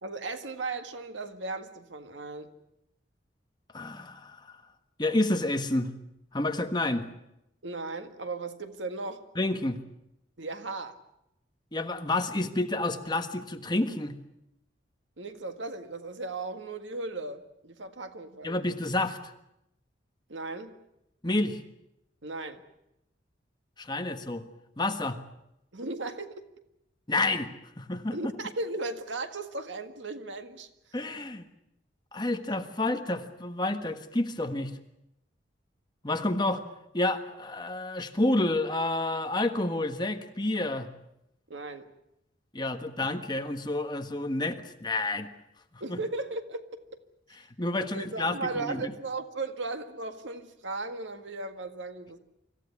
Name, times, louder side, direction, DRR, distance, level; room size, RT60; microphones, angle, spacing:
voice 1, 0.0-2.5 7.6-9.2 10.4-11.0 15.2-18.6 20.3-20.7 22.2-22.6 25.7-26.4 28.1-30.7 41.5-41.9 45.8-46.6 47.8-52.2, right 3 dB, 90° right, 8 dB, 1.8 m, -36 dB
voice 2, 3.7-4.6 5.0-5.9 6.3-7.1 9.3-9.8 11.7-14.2 18.4-19.3 21.2-21.6 23.8-24.4 24.8-25.2 27.1-27.5 27.7-28.2 30.9-31.5 32.1-34.7 36.0-36.6 36.9-40.9 42.5-45.3 45.7-46.0 47.6-48.9, left 2 dB, 25° left, 6 dB, 1.5 m, -29 dB
25.0 x 15.0 x 9.8 m, 0.85 s
head